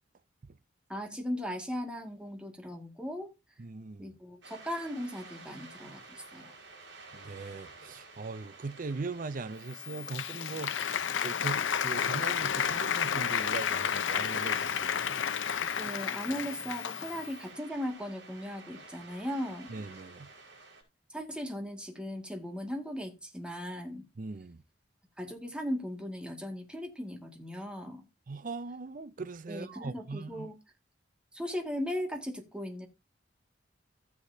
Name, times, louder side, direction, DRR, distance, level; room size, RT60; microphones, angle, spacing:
voice 1, 0.9-3.3 4.0-6.5 15.7-19.7 21.1-24.0 25.2-28.0 29.5-30.5 31.3-32.9, equal, 5° right, 2.0 m, -38 dB
voice 2, 3.6-4.1 7.1-10.8 11.2-15.2 19.7-20.3 24.2-24.6 28.3-30.5, right 3 dB, 45° right, 0.5 m, -40 dB
sound 1, 4.4-20.8, right 3 dB, 75° right, 4.5 m, -50 dB
Applause, 9.7-17.3, left 8 dB, 85° left, 0.6 m, -31 dB
14.5 x 8.0 x 2.7 m
head